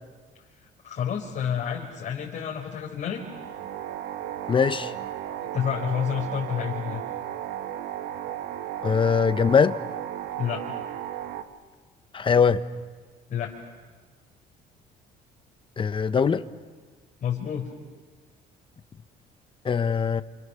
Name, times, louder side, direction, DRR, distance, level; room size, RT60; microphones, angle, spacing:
voice 1, 0.8-3.2 5.5-7.0 10.4-10.8 13.3-13.5 17.2-17.7, left 8 dB, 50° left, 4.2 m, -29 dB
sound 1, 3.1-11.4, right 11 dB, 85° right, 1.6 m, -35 dB
voice 2, 4.5-4.9 8.8-9.8 12.1-12.6 15.8-16.5 19.6-20.2, left 6 dB, 30° left, 1.1 m, -21 dB
28.5 x 27.5 x 7.0 m
cardioid pair, 110°, 17 cm